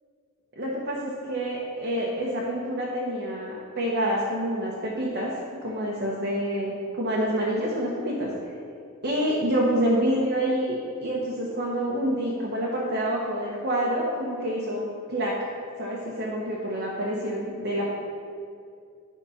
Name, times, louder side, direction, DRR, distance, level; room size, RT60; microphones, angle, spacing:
voice 1, 0.6-8.3 9.0-15.3 15.8-17.9, equal, 45° right, -4 dB, 1.2 m, -27 dB
10.0 x 5.2 x 5.8 m, 2.4 s
head